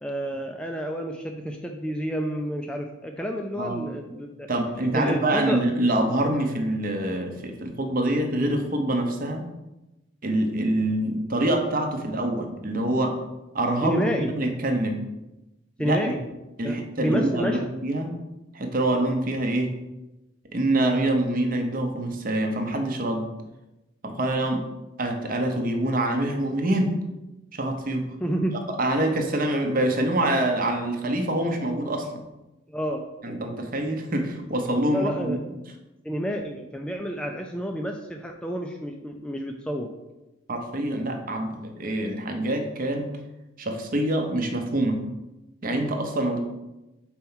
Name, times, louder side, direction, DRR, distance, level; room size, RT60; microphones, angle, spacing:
voice 1, 0.0-4.5 4.9-5.6 13.8-14.3 15.8-16.2 16.6-17.7 28.2-28.5 32.7-33.0 34.9-35.4 36.0-39.9, equal, 5° left, 2 dB, 0.3 m, -29 dB
voice 2, 4.5-9.5 10.2-13.2 13.5-15.0 15.8-16.2 16.6-18.1 18.5-19.8 20.5-23.3 24.0-24.7 25.0-27.0 27.5-28.1 28.8-32.2 33.2-35.4 40.5-43.1 43.6-45.0 45.6-46.4, right 1 dB, 45° right, 4 dB, 0.8 m, -25 dB
4.4 x 4.4 x 5.6 m, 1.0 s
head